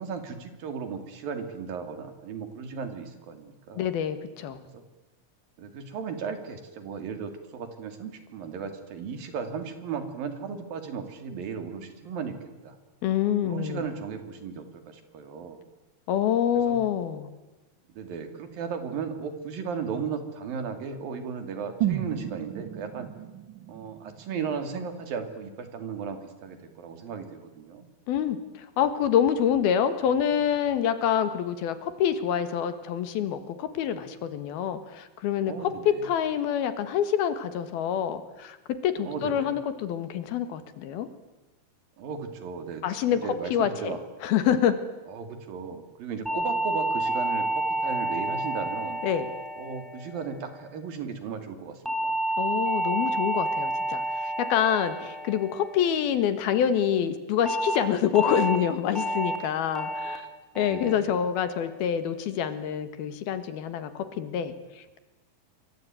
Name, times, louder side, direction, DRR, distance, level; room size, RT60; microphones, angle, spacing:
voice 1, 0.0-3.9 4.7-4.8 5.6-12.8 13.4-15.6 16.7-16.8 17.9-23.1 23.7-27.9 35.5-36.1 39.0-39.5 42.0-44.0 45.1-49.0 49.6-52.1 60.6-61.2, right 6 dB, 70° right, 8 dB, 4.3 m, -36 dB
voice 2, 3.8-4.6 13.0-13.8 16.1-17.3 28.1-35.7 36.0-38.6 38.8-41.1 42.8-44.0 44.2-44.8 49.0-49.3 52.4-60.3 60.6-64.8, left 9 dB, 80° left, 11 dB, 3.5 m, -26 dB
sound 1, 21.8-25.8 26.1-26.2, right 11 dB, 50° right, 1.4 m, -34 dB
sound 2, 46.3-50.7 51.9-56.3 57.5-57.8 58.2-58.6 59.0-59.4 59.8-60.2 60.6-61.0 61.4-61.8, right 1 dB, ahead, 3.7 m, -30 dB
27.0 x 24.0 x 9.1 m, 1.1 s
omnidirectional pair, 4.3 m